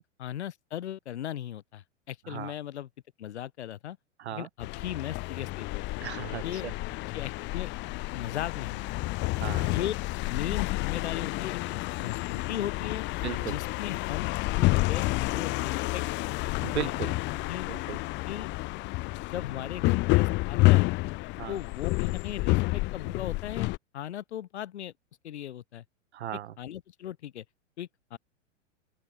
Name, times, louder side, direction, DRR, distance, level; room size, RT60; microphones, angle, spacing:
voice 1, 0.0-2.9 3.2-4.0 4.3-6.1 6.4-6.7 7.1-7.7 8.1-9.0 9.6-9.9 10.3-13.0 13.4-15.1 15.3-16.3 17.5-17.7 18.2-18.5 19.3-20.9 21.5-23.7 23.9-24.9 25.2-25.8 26.3-27.4 27.8-28.2, left 11 dB, 60° left, 4.9 m, -37 dB
sound 1, 4.6-23.8, left 22 dB, 30° left, 1.1 m, -29 dB
voice 2, 6.0-6.4 9.3-9.7 13.2-13.6 16.6-17.1 17.7-18.0 21.4-21.5 26.1-26.5, right 11 dB, 60° right, 0.8 m, -36 dB
open air
figure-of-eight pair, 100°, 38 cm